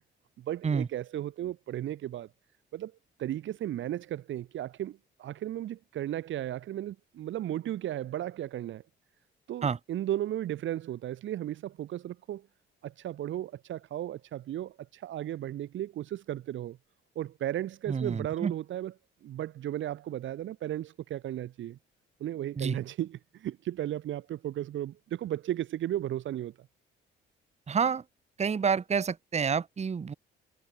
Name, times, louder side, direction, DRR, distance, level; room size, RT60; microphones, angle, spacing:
voice 1, 0.4-2.3 2.7-2.9 3.2-8.8 9.5-12.5 12.8-16.8 17.2-18.9 19.2-21.8 22.2-26.5, right 12 dB, 75° right, 2.0 m, -35 dB
voice 2, 17.9-18.5 22.6-22.8 27.7-28.0 28.4-30.1, right 6 dB, 35° right, 1.3 m, -28 dB
cardioid pair, 90°, 20 cm